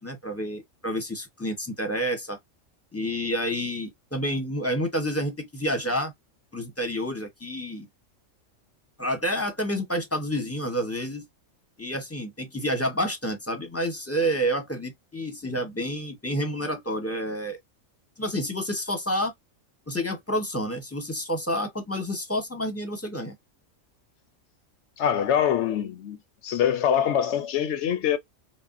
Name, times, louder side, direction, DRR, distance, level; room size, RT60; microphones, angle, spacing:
voice 1, 0.0-2.4 2.9-6.1 6.5-7.9 9.0-11.3 11.8-17.6 18.2-19.3 19.9-23.4, equal, 15° left, 0.7 m, -29 dB
voice 2, 25.0-26.2 26.4-28.2, left 9 dB, 70° left, 0.8 m, -24 dB
5.3 x 2.1 x 2.5 m
omnidirectional pair, 1.4 m